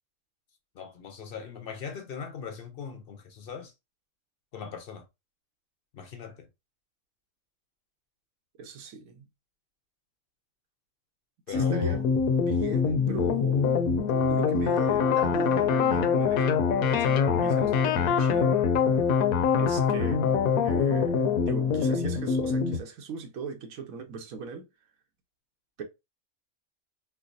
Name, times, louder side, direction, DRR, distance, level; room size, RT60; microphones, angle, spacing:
voice 1, 0.8-3.7 4.5-5.0 5.9-6.5 11.5-12.0, left 6 dB, 60° left, 0.6 m, -39 dB
voice 2, 8.6-9.2 11.5-12.0 12.4-13.6 14.3-16.6 16.9-18.6 19.6-20.2 20.6-24.7 25.8-25.9, right 5 dB, 75° right, 1.1 m, -39 dB
sound 1, 11.5-22.8, left 6 dB, 85° left, 1.0 m, -24 dB
4.7 x 2.0 x 2.5 m
omnidirectional pair, 1.5 m